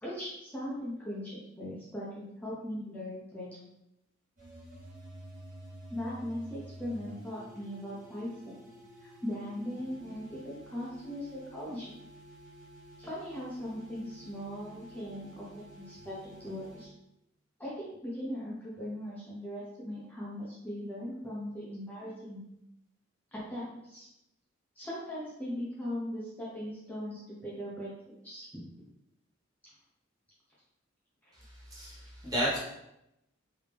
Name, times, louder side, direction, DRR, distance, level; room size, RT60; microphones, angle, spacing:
voice 1, 0.0-3.6 5.9-8.6 9.0-11.9 13.0-16.9 17.6-22.4 23.3-24.1 24.8-28.7, equal, 10° left, -8 dB, 0.6 m, -39 dB
sound 1, 4.4-16.9, right 1 dB, 45° right, 1.2 m, -51 dB
voice 2, 31.4-32.6, equal, 20° right, -6 dB, 1.0 m, -33 dB
3.3 x 2.7 x 3.4 m, 0.85 s
head